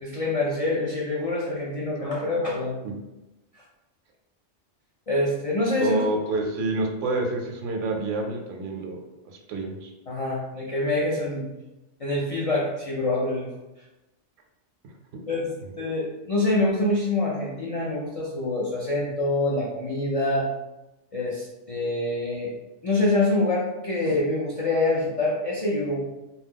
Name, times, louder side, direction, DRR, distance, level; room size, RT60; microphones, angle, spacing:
voice 1, 0.0-2.8 3.5-3.6 5.1-6.0 10.1-11.4 12.0-13.5 15.3-15.5 15.8-20.5 21.1-22.5 22.8-26.0, left 2 dB, 55° left, -4 dB, 0.3 m, -25 dB
voice 2, 5.8-9.0 9.3-9.9, right 2 dB, 85° right, 3 dB, 0.9 m, -28 dB
2.9 x 2.3 x 3.5 m, 0.98 s
omnidirectional pair, 1.2 m